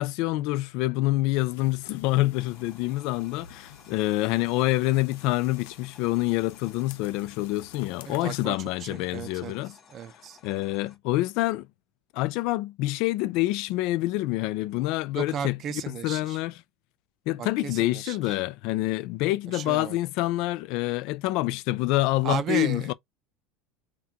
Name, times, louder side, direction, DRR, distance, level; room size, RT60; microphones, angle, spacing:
voice 1, 0.0-9.7 10.4-11.7 12.1-16.6 17.3-22.9, left 18 dB, 55° left, 0.4 m, -27 dB
sound 1, 1.3-8.5, left 9 dB, 85° left, 0.8 m, -50 dB
sound 2, 2.3-11.0, left 6 dB, 30° left, 1.5 m, -56 dB
voice 2, 8.1-10.4 15.1-16.4 17.4-18.4 19.5-20.0 22.2-22.9, right 8 dB, 35° right, 0.5 m, -35 dB
3.7 x 2.3 x 2.8 m
supercardioid pair, 150°, 0 cm